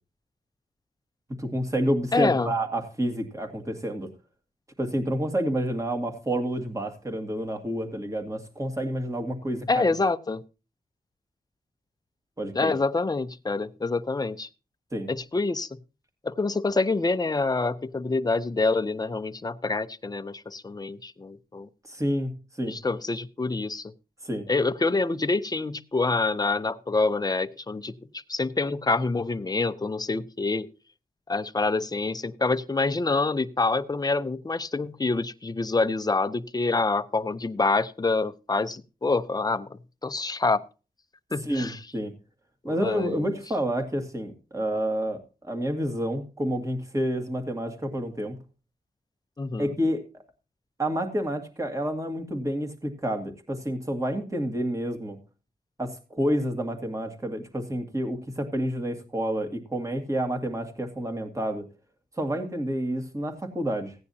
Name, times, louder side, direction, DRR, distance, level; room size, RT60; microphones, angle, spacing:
voice 1, 1.4-4.1 4.8-9.8 12.4-12.7 14.9-15.1 21.9-22.3 22.6-22.7 24.2-24.5 41.4-42.1 42.6-48.4 49.6-50.0 50.8-55.2 55.8-61.7 62.2-64.0, equal, 20° right, 4 dB, 2.1 m, -29 dB
voice 2, 2.1-2.5 9.7-10.4 12.5-14.5 15.1-15.8 16.2-21.7 22.7-23.9 24.5-30.7 31.3-40.6 41.3-41.8 42.7-43.4 49.4-49.7, left 3 dB, 25° left, 11 dB, 0.6 m, -26 dB
16.0 x 9.6 x 2.7 m, 0.32 s
wide cardioid pair, 115°, 16 cm